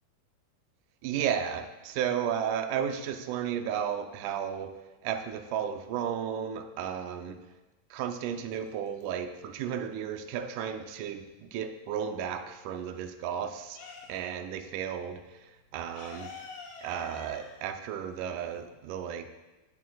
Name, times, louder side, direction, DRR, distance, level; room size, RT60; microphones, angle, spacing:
voice 1, 1.0-4.7 5.0-7.4 7.9-13.8 14.1-15.2 15.7-16.3 16.8-19.3, right 8 dB, 85° right, 7 dB, 1.8 m, -33 dB
sound 1, 8.6-9.5 9.8-11.7 12.1-14.5 14.8-14.9 15.2-18.7, left 4 dB, 85° left, 3.6 m, -47 dB
19.0 x 7.6 x 2.3 m, 1.1 s
omnidirectional pair, 4.3 m